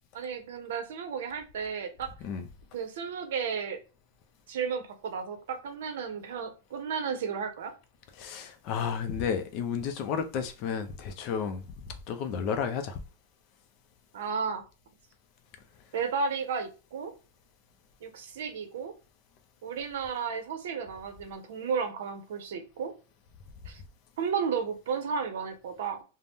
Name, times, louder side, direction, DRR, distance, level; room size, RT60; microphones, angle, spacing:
voice 1, 0.1-2.1 2.7-3.8 4.5-7.7 14.1-14.6 15.9-17.1 18.0-18.9 19.6-22.9 23.7-23.8 24.2-26.0, right 6 dB, 70° right, 0.7 m, -33 dB
voice 2, 8.2-11.6 12.1-13.0, left 6 dB, 40° left, 0.4 m, -32 dB
2.6 x 2.0 x 3.4 m
supercardioid pair, 155°, 0 cm